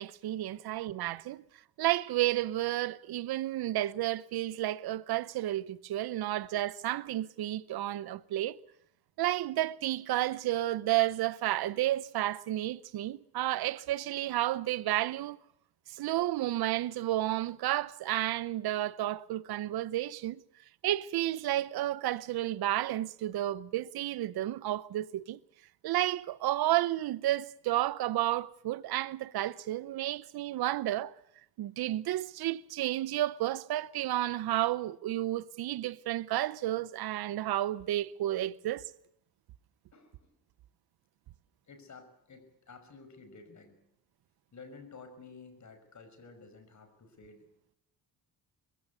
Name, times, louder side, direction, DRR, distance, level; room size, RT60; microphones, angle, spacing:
voice 1, 0.0-1.4 1.8-8.6 9.2-15.4 15.9-20.4 20.8-25.4 25.8-31.1 31.6-38.8, right 14 dB, 75° right, 0.8 m, -31 dB
voice 2, 39.9-40.3 41.7-43.8 44.5-47.5, left 4 dB, 50° left, 5.6 m, -52 dB
22.0 x 16.0 x 9.4 m
cardioid pair, 85°, 37 cm